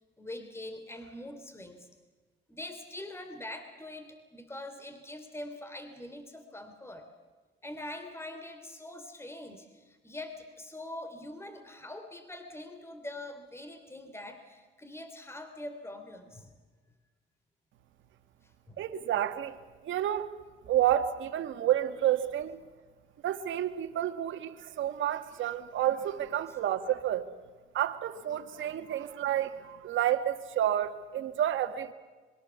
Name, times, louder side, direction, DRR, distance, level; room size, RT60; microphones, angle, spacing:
voice 1, 0.2-1.9 2.5-7.1 7.6-16.5 18.4-18.8 26.5-26.6, left 1 dB, 10° left, 8 dB, 3.1 m, -43 dB
voice 2, 18.8-19.6 19.8-20.3 20.7-22.6 23.2-27.2 27.7-31.9, right 11 dB, 75° right, 8 dB, 1.9 m, -30 dB
26.0 x 22.5 x 7.1 m, 1.4 s
cardioid pair, 90°, 20 cm